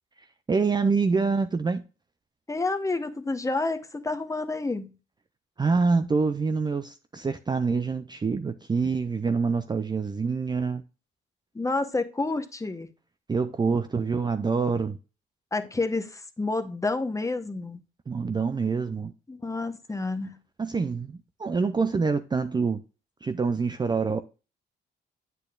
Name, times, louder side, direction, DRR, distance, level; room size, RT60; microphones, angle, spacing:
voice 1, 0.5-1.8 5.6-10.8 13.3-15.0 18.1-19.1 20.6-22.8 23.2-24.2, right 4 dB, 20° right, 0.4 m, -26 dB
voice 2, 2.5-4.9 11.5-12.9 15.5-17.8 19.3-20.4, left 3 dB, 15° left, 0.9 m, -29 dB
8.2 x 6.8 x 2.4 m
cardioid pair, 90°, 20 cm